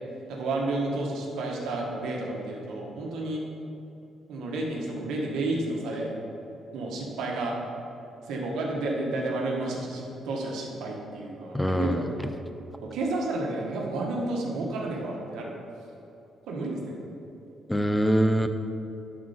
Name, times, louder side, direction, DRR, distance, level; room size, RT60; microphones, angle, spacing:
voice 1, 0.3-3.4 4.3-6.2 6.7-7.6 8.2-12.1 12.8-15.5 16.5-17.1, right 2 dB, 85° right, -1 dB, 1.4 m, -31 dB
voice 2, 11.5-12.0 17.7-18.5, equal, 5° left, 7 dB, 0.5 m, -23 dB
11.0 x 4.3 x 4.3 m, 2.9 s
cardioid pair, 125°, 0 cm